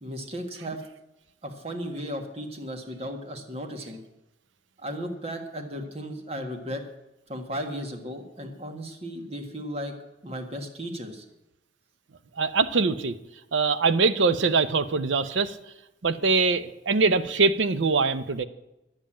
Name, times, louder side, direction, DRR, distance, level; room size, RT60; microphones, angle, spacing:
voice 1, 0.0-0.8 1.4-4.0 4.8-6.8 7.3-9.9 10.2-11.2, equal, 35° right, 5 dB, 1.6 m, -35 dB
voice 2, 12.4-13.1 13.5-15.6 16.0-18.4, right 4 dB, 85° right, 13 dB, 0.7 m, -23 dB
10.5 x 7.5 x 8.8 m, 0.94 s
head